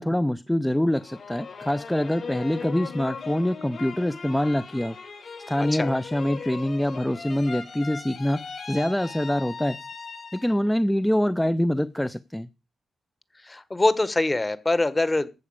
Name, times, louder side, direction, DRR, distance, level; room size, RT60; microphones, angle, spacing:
voice 1, 0.0-5.0 5.5-9.8 10.3-12.5, left 1 dB, 5° left, 0.5 m, -25 dB
sound 1, 0.9-10.7 11.2-11.8, left 5 dB, 55° left, 4.3 m, -39 dB
voice 2, 13.4-15.3, left 2 dB, 20° left, 1.3 m, -23 dB
14.0 x 4.9 x 8.8 m
cardioid pair, 90°, 0 cm